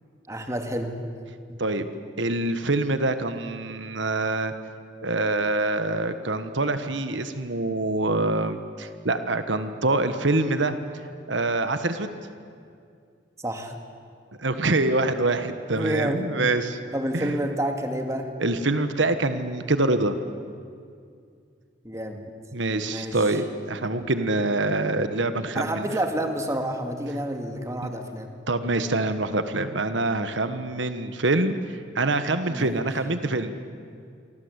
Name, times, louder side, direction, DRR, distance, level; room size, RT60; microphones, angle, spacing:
voice 1, 0.3-1.0 1.5-1.6 13.4-13.7 15.7-16.3 16.9-18.3 21.8-22.3 22.8-23.4 25.5-28.3 32.5-33.2, right 1 dB, 15° right, 4 dB, 2.3 m, -29 dB
voice 2, 2.2-4.5 5.0-10.7 11.3-12.1 14.4-16.8 17.1-17.4 18.4-20.2 22.5-25.9 27.8-27.9 28.5-33.6, right 2 dB, 80° right, 9 dB, 1.4 m, -25 dB
28.0 x 24.5 x 8.2 m, 2.3 s
head